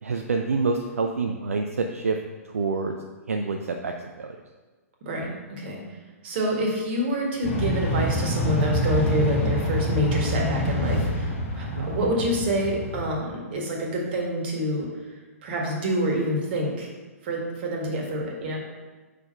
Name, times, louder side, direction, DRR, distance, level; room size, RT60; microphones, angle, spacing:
voice 1, 0.0-2.2 2.5-2.9 3.3-4.4 11.8-11.9, right 4 dB, 65° right, 4 dB, 0.5 m, -27 dB
voice 2, 5.0-5.8 6.2-11.3 11.5-14.9 15.4-16.9 17.2-18.6, equal, 40° right, -1 dB, 1.7 m, -27 dB
sound 1, 7.4-13.1, equal, 50° left, 1.8 m, -26 dB
5.2 x 5.0 x 5.6 m, 1.3 s
figure-of-eight pair, 115°, 8 cm